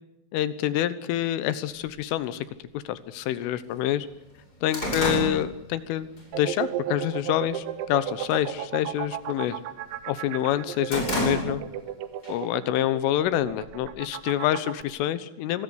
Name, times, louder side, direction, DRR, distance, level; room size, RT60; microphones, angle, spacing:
voice 1, 0.3-2.5 2.7-4.1 4.6-6.1 6.3-9.6 10.1-11.6 12.3-15.6, left 12 dB, 85° left, 14 dB, 3.7 m, -27 dB
sound 1, 1.9-2.0 2.9-3.0 3.4-3.5 3.9-6.3 6.7-7.0 7.4-7.9 8.2-8.5 8.8-10.0 10.4-11.9 12.2-12.4 13.3-14.1, equal, 20° left, 7.4 m, -31 dB
sound 2, 6.3-14.8, right 11 dB, 75° right, 3.5 m, -34 dB
25.0 x 20.0 x 8.2 m, 0.84 s
omnidirectional pair, 5.6 m